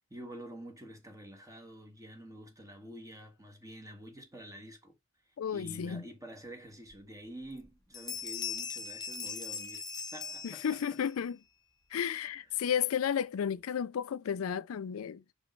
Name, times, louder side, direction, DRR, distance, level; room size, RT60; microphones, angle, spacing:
voice 1, 0.1-4.9 5.5-9.8 10.1-11.0, equal, 15° right, 1.6 m, -48 dB
voice 2, 5.4-6.0 10.4-11.4 11.9-15.2, left 8 dB, 75° left, 0.4 m, -33 dB
sound 1, 6.9-7.0 7.4-7.7 7.9-11.1, left 6 dB, 20° left, 0.8 m, -40 dB
5.2 x 5.1 x 4.5 m
head